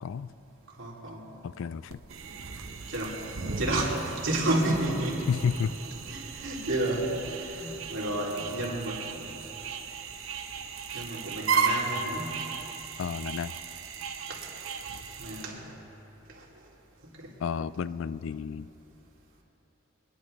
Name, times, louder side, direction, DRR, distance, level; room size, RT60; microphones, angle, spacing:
voice 1, 0.8-1.2 2.9-3.2 3.6-5.3 6.1-9.3 10.9-12.5 14.3-14.4 15.2-15.7 16.3-16.4 17.0-17.3, right 1 dB, 65° right, -4 dB, 2.6 m, -31 dB
voice 2, 1.4-2.0 5.3-5.7 13.0-13.6 17.4-18.7, left 6 dB, 70° left, 16 dB, 0.3 m, -31 dB
sound 1, 1.9-15.5, right 5 dB, 80° right, 0.9 m, -35 dB
24.0 x 10.5 x 3.2 m, 3.0 s
head